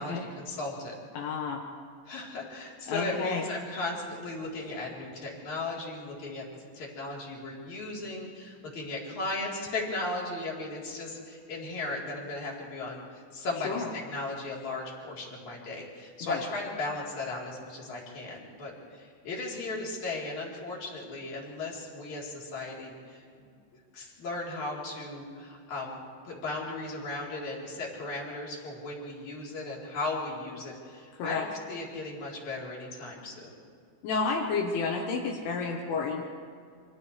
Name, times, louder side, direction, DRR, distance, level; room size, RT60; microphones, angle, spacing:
voice 1, 0.0-1.0 2.1-23.5 23.9-26.0 26.2-33.6, left 2 dB, 40° left, -4 dB, 4.7 m, -36 dB
voice 2, 1.1-1.6 2.9-3.4 13.7-13.9 16.2-16.4 31.2-31.4 34.0-36.2, left 4 dB, 75° left, 0 dB, 3.6 m, -30 dB
30.0 x 26.5 x 3.3 m, 2.3 s
omnidirectional pair, 5.7 m